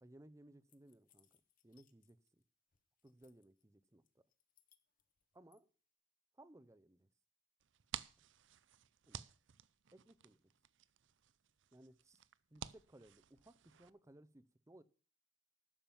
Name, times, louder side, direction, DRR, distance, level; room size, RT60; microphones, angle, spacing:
voice 1, 0.0-2.4 3.0-4.2 5.3-5.7 6.3-7.1 9.1-9.2 9.9-10.4 11.7-12.2 12.5-14.8, right 1 dB, 15° right, 0.6 m, -62 dB
sound 1, 0.7-2.4 2.7-3.6 4.0-5.6, left 12 dB, 40° left, 1.0 m, -75 dB
sound 2, 7.6-13.9, right 9 dB, 60° right, 0.5 m, -53 dB
11.5 x 7.3 x 7.1 m
head